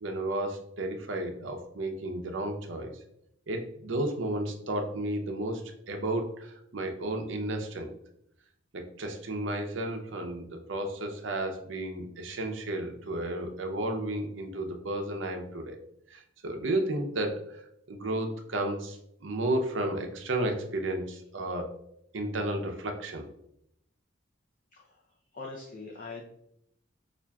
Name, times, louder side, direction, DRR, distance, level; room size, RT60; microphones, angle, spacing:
voice 1, 0.0-3.0 3.5-7.9 8.7-15.8 16.1-17.6 17.9-21.7 22.1-23.2, right 1 dB, 70° right, 3 dB, 0.6 m, -33 dB
voice 2, 25.3-26.2, left 3 dB, 45° left, -2 dB, 0.5 m, -42 dB
5.8 x 2.4 x 2.3 m, 0.74 s
head